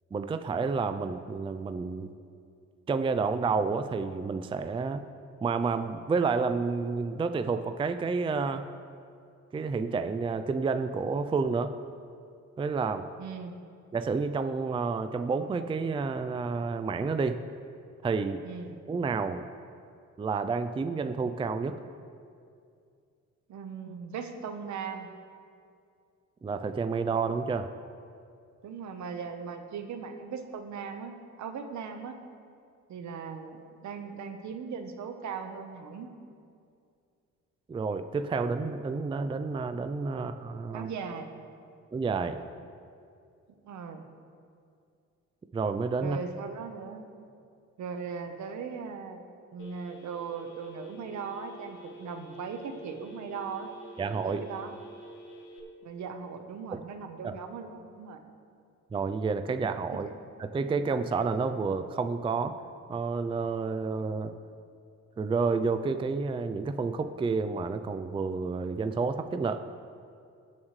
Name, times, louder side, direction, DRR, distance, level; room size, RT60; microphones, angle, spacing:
voice 1, 0.1-2.1 2.9-5.0 5.4-8.7 9.5-11.7 12.6-13.1 13.9-17.4 18.0-18.4 18.9-19.5 20.2-21.8 26.4-27.7 37.7-40.9 41.9-42.4 45.5-46.2 54.0-54.4 56.7-56.8 57.2-57.3 58.9-60.1 60.4-62.6 62.9-64.3 65.2-69.6, right 4 dB, 20° right, 9 dB, 0.4 m, -30 dB
voice 2, 13.2-13.6 18.4-18.8 23.5-25.1 28.6-32.2 32.9-36.1 40.1-40.2 40.7-41.3 43.6-44.0 46.0-47.0 47.8-49.2 49.5-53.7 54.2-54.7 55.8-58.2 59.9-60.0, right 6 dB, 70° right, 6 dB, 1.1 m, -39 dB
Telephone, 49.6-55.6, equal, 80° left, 1.6 m, -48 dB
19.0 x 7.3 x 3.2 m, 2.4 s
cardioid pair, 90°, 30 cm